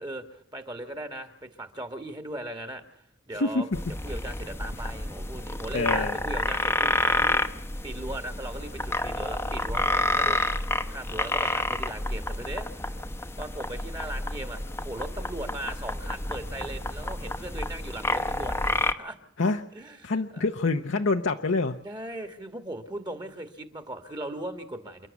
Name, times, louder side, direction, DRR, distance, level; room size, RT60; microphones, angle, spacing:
voice 1, 0.0-3.7 4.0-7.4 7.8-12.7 13.4-19.2 19.7-20.4 21.8-25.1, right 1 dB, 25° right, 8 dB, 1.6 m, -38 dB
sound 1, 3.7-18.9, left 2 dB, 15° left, 0.9 m, -29 dB
voice 2, 5.7-6.2 19.4-19.6 20.0-21.8, left 3 dB, 75° left, 4 dB, 0.8 m, -26 dB
29.0 x 11.0 x 8.3 m, 0.76 s
head